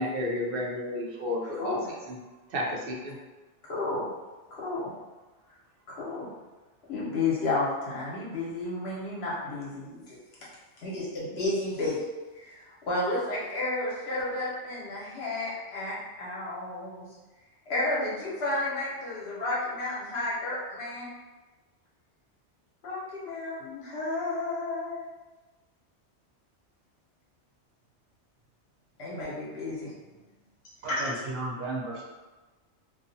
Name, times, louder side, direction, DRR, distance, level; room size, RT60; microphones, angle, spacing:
voice 1, 0.0-1.8 2.1-2.2 2.5-3.2, left 1 dB, 60° right, -2 dB, 0.7 m, -31 dB
voice 2, 1.4-1.9 3.6-4.1 4.5-4.9 5.9-6.3 6.9-10.2 10.8-12.0 12.3-17.1 17.7-21.1 22.8-25.1 29.0-30.1 30.9-31.0, left 2 dB, 65° left, -6 dB, 1.1 m, -32 dB
voice 3, 30.8-32.0, right 2 dB, 90° right, -5 dB, 1.0 m, -34 dB
2.4 x 2.3 x 2.6 m, 1.2 s
omnidirectional pair, 1.2 m